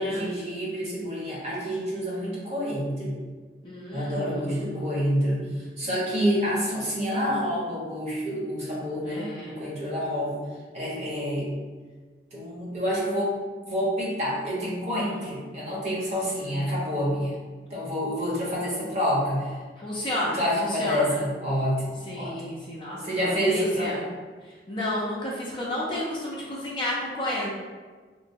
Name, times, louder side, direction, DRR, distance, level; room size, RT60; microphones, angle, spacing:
voice 1, 0.0-3.2 3.9-9.3 9.6-10.4 10.7-11.5 12.3-13.4 13.7-17.4 17.7-19.5 20.3-22.4 23.0-24.1, equal, 40° right, -6 dB, 0.9 m, -28 dB
voice 2, 3.6-4.9 9.0-9.6 15.0-15.3 16.4-16.7 19.8-21.2 22.1-24.0 24.7-27.5, left 1 dB, 30° left, -5 dB, 0.5 m, -31 dB
3.0 x 2.0 x 2.6 m, 1.4 s
head